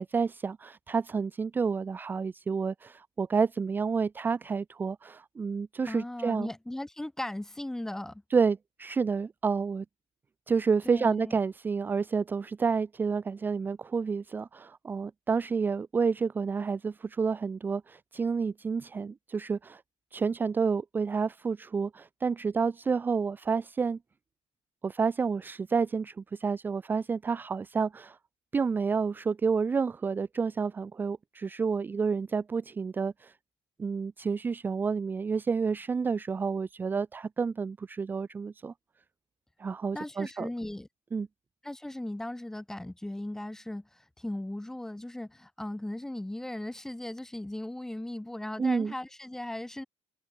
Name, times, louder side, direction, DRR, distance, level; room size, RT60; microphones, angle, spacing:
voice 1, 0.0-6.5 8.3-9.8 10.5-19.8 20.1-24.0 24.8-28.2 28.5-33.3 33.8-38.7 39.6-40.5 41.1-41.3 48.6-48.9, right 5 dB, 15° right, 0.8 m, -29 dB
voice 2, 5.9-8.2 10.8-11.4 39.9-40.9 41.6-49.9, left 1 dB, 5° left, 1.6 m, -37 dB
cardioid pair, 175°, 11 cm